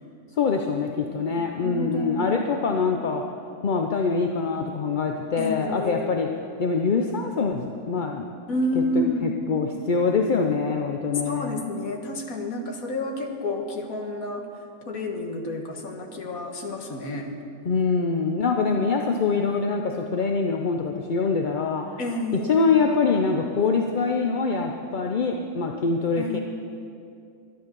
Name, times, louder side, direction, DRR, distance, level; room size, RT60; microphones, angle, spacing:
voice 1, 0.4-3.2 3.6-6.3 6.6-8.3 8.7-11.6 17.6-22.0 22.3-26.4, left 4 dB, 45° left, 3 dB, 0.6 m, -24 dB
voice 2, 1.4-2.3 5.4-6.1 8.5-9.3 11.3-14.4 14.9-17.3 22.0-22.5 26.2-26.4, left 1 dB, 75° left, 3 dB, 1.8 m, -29 dB
13.0 x 10.5 x 6.8 m, 2.5 s
omnidirectional pair, 1.5 m